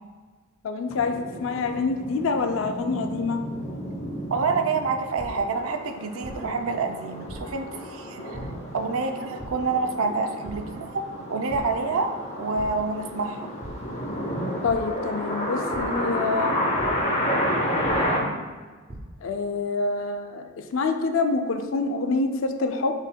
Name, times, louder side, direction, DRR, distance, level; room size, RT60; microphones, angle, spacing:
voice 1, 0.6-3.4 14.6-16.6 19.2-22.9, left 3 dB, 65° left, 6 dB, 0.4 m, -26 dB
sound 1, 0.9-18.2, equal, 35° left, 0.7 m, -31 dB
voice 2, 4.3-11.0 11.3-13.5, right 4 dB, 80° right, 5 dB, 0.5 m, -28 dB
sound 2, 5.2-5.3 6.2-6.3 7.3-7.4 8.3-8.4 9.4-9.5 10.4-10.5 11.0-11.2 11.5-11.6 12.5-12.6 13.6-13.7 14.7-14.8 15.7-15.8 16.8-16.9 17.8-17.9 18.6-19.0, right 1 dB, 25° right, 0.5 m, -39 dB
6.2 x 3.5 x 2.2 m, 1.4 s
head